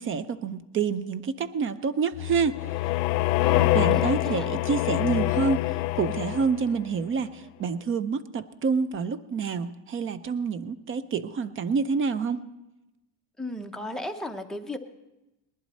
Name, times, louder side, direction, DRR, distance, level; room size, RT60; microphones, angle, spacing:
voice 1, 0.0-2.9 3.7-12.4, right 5 dB, 30° right, 15 dB, 0.4 m, -28 dB
sound 1, 2.1-6.8, left 18 dB, 90° left, 0.6 m, -25 dB
voice 2, 3.4-4.5 13.4-14.8, left 1 dB, ahead, 2 dB, 0.7 m, -35 dB
20.0 x 11.5 x 4.2 m, 0.98 s
cardioid pair, 135°, 48 cm